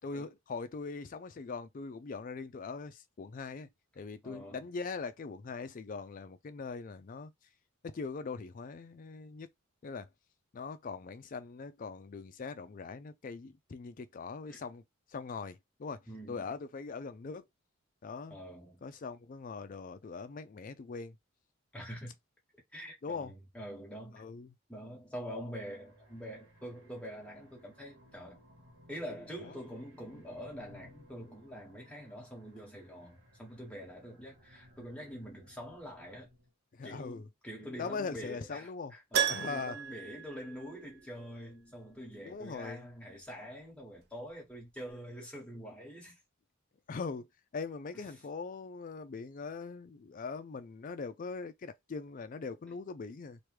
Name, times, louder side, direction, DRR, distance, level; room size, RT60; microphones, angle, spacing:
voice 1, 0.0-3.7 4.0-7.3 7.8-9.5 9.8-10.1 10.5-14.8 15.1-16.0 16.3-17.4 18.0-18.4 18.8-21.2 23.0-23.3 24.1-24.5 29.4-29.6 36.7-37.3 37.7-38.9 39.3-39.8 42.2-42.9 46.9-47.3 47.5-53.4, left 4 dB, 40° left, 0.3 m, -41 dB
voice 2, 4.2-4.6 14.5-14.6 16.1-16.5 18.3-18.8 21.7-22.1 22.7-24.2 24.7-28.4 28.9-36.3 36.8-46.2 47.9-48.0 52.7-52.8, equal, 5° left, 1.3 m, -45 dB
sound 1, 25.7-36.5, equal, 75° right, 1.2 m, -60 dB
Keyboard (musical), 39.1-41.2 41.4-41.5 44.3-44.4 44.6-44.7, right 8 dB, 50° right, 0.5 m, -34 dB
3.1 x 2.2 x 3.1 m
head